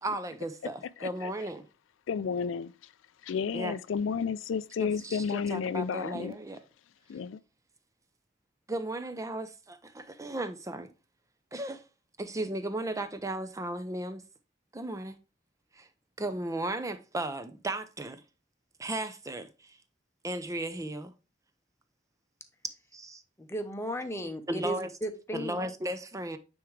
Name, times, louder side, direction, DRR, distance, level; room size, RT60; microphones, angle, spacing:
voice 1, 0.0-1.6 3.5-3.8 4.8-6.6 8.7-10.9 11.5-11.8 12.2-14.2 14.7-15.2 15.7-15.9 16.2-18.2 18.8-19.8 20.2-21.1 22.9-23.2 24.5-24.9 25.3-26.4, right 1 dB, 15° right, 0.5 m, -35 dB
voice 2, 1.0-1.3 2.1-2.7 3.2-6.4 7.1-7.4, left 6 dB, 80° left, 0.4 m, -32 dB
voice 3, 23.4-25.7, right 1 dB, 15° left, 0.8 m, -35 dB
9.2 x 3.6 x 3.2 m
head